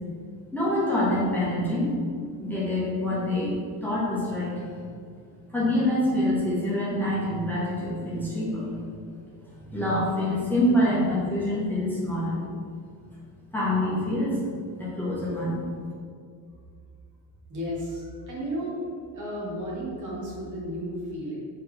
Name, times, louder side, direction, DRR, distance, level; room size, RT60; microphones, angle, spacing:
voice 1, 0.5-2.1 2.4-4.7 5.5-9.0 9.5-12.4 13.5-14.4 14.8-15.6, left 1 dB, 5° left, -8 dB, 1.1 m, -26 dB
voice 2, 17.5-18.8 19.1-21.4, equal, 40° right, -5 dB, 1.4 m, -33 dB
4.3 x 3.3 x 3.5 m, 2.2 s
cardioid pair, 110°, 43 cm